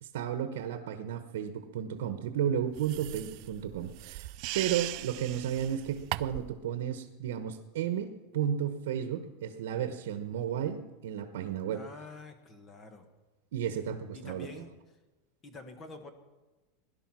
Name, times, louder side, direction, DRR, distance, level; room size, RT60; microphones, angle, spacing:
voice 1, 0.0-11.8 13.5-14.5, right 9 dB, 80° right, 8 dB, 1.1 m, -33 dB
sound 1, 2.8-6.6, right 19 dB, 45° right, 0.4 m, -39 dB
voice 2, 11.7-13.1 14.1-14.7 15.4-16.1, left 3 dB, 20° left, 8 dB, 1.3 m, -47 dB
17.5 x 11.5 x 6.1 m, 1.2 s
supercardioid pair, 170°, 0 cm